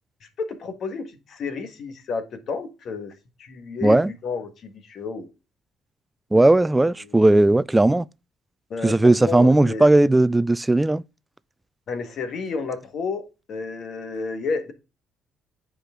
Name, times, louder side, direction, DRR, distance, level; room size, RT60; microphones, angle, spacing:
voice 1, 0.2-3.1 3.4-5.3 7.0-7.4 8.7-9.9 11.9-14.7, left 4 dB, 60° left, 1.6 m, -31 dB
voice 2, 3.8-4.1 6.3-8.1 8.8-11.0, right 2 dB, 15° right, 0.3 m, -17 dB
8.7 x 5.0 x 3.7 m
supercardioid pair, 65°, 0 cm